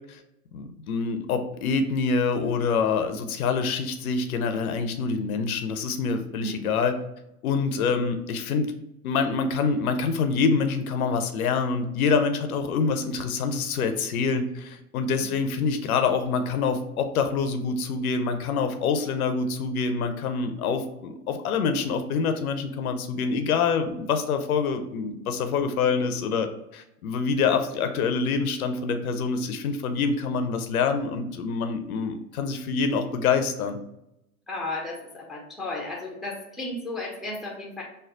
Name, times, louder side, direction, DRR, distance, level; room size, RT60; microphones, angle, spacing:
voice 1, 0.5-7.0 7.4-8.7 9.0-33.8, left 5 dB, 70° left, 8 dB, 0.6 m, -26 dB
voice 2, 6.4-6.8 34.5-37.8, left 2 dB, ahead, -2 dB, 0.6 m, -34 dB
3.2 x 2.2 x 3.7 m, 0.85 s
hypercardioid pair, 105°, 45 cm